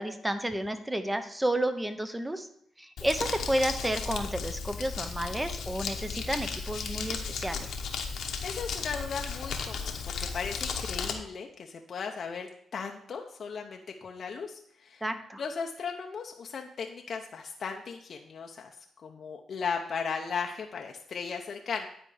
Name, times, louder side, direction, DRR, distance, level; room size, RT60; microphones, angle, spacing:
voice 1, 0.0-2.5 2.8-7.7 15.0-15.4, right 1 dB, 10° right, 9 dB, 0.8 m, -31 dB
Crumpling crinkling, 3.0-11.1, left 6 dB, 75° left, 1.0 m, -35 dB
voice 2, 8.4-15.0 15.4-18.7 19.0-21.9, left 5 dB, 55° left, 2 dB, 0.7 m, -36 dB
9.9 x 4.5 x 4.8 m, 0.67 s
cardioid pair, 85°, 0 cm